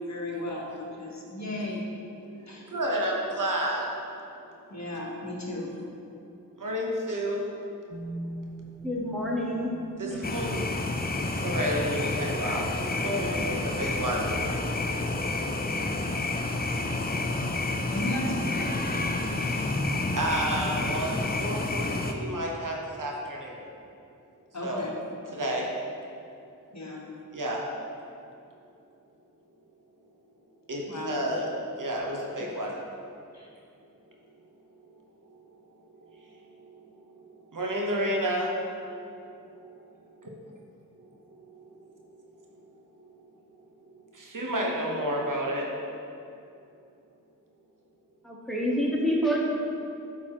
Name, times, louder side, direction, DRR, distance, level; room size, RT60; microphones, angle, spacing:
voice 1, 0.0-1.8 2.5-2.6 4.7-5.7 17.9-18.7 24.5-24.9 26.7-27.0 30.9-31.2 33.3-33.5, left 1 dB, 55° left, -3 dB, 1.3 m, -34 dB
voice 2, 2.2-3.9 6.6-7.5 10.0-10.7 11.4-14.3 19.3-19.7 20.2-23.6 24.6-24.9 25.3-25.7 27.3-27.6 30.7-31.5 31.8-32.8 36.3-36.4 37.5-38.5 39.5-39.7 41.8-41.9 43.0-43.1 44.1-45.7, right 1 dB, 65° right, -1 dB, 1.0 m, -31 dB
sound 1, 7.9-14.9, right 1 dB, 30° right, 0.5 m, -45 dB
voice 3, 8.8-9.7 10.1-10.3 48.2-49.4, equal, ahead, -4 dB, 1.3 m, -27 dB
sound 2, 10.2-22.1, left 2 dB, 30° left, 0.5 m, -29 dB
8.6 x 4.2 x 2.9 m, 2.6 s
cardioid pair, 40°, 34 cm